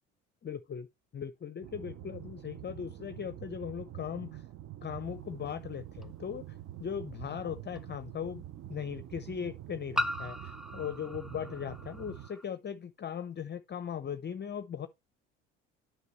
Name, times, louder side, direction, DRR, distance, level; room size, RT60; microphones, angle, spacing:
voice 1, 0.4-0.9 1.1-4.4 4.8-8.4 8.7-14.9, left 8 dB, 30° left, 0.7 m, -39 dB
sound 1, 1.6-12.3, right 13 dB, 40° right, 0.6 m, -46 dB
sound 2, 6.0-6.1 7.7-7.8 9.9-12.4, left 1 dB, ahead, 1.0 m, -37 dB
9.4 x 6.2 x 3.0 m
hypercardioid pair, 60°, 36 cm